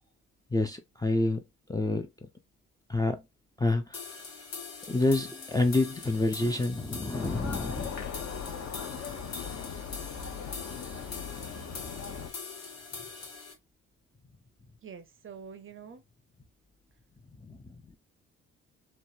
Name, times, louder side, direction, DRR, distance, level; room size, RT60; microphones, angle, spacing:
voice 1, 0.5-1.4 1.7-2.1 2.9-3.2 3.6-4.2 4.9-7.9 17.4-18.0, left 2 dB, 10° left, 0.5 m, -28 dB
sound 1, 3.9-13.5, left 4 dB, 75° left, 1.3 m, -43 dB
sound 2, 7.1-12.3, left 6 dB, 50° left, 0.8 m, -39 dB
voice 2, 14.8-16.0, right 6 dB, 35° right, 0.6 m, -46 dB
3.2 x 2.1 x 2.6 m
hypercardioid pair, 50°, 35 cm